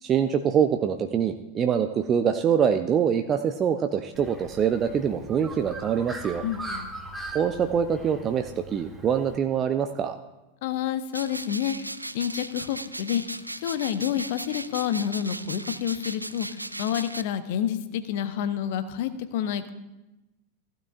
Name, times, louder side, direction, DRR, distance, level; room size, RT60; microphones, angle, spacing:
voice 1, 0.0-6.4 7.3-10.2, right 8 dB, 25° right, 7 dB, 0.5 m, -24 dB
Bird, 4.1-9.4, right 2 dB, 5° right, 1.3 m, -40 dB
voice 2, 6.4-6.9 10.6-16.5 16.8-19.7, left 10 dB, 50° left, 11 dB, 0.8 m, -29 dB
sound 1, 11.1-17.2, right 1 dB, 85° right, 0.3 m, -37 dB
15.5 x 12.0 x 2.5 m, 1.0 s
figure-of-eight pair, 90°, 0 cm